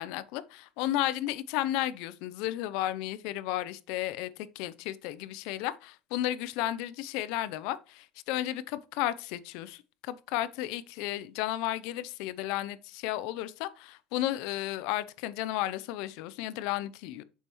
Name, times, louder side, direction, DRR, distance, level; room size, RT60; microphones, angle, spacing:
voice 1, 0.0-17.2, left 14 dB, 70° left, 0.5 m, -33 dB
7.1 x 5.5 x 3.0 m
cardioid pair, 150°, 0 cm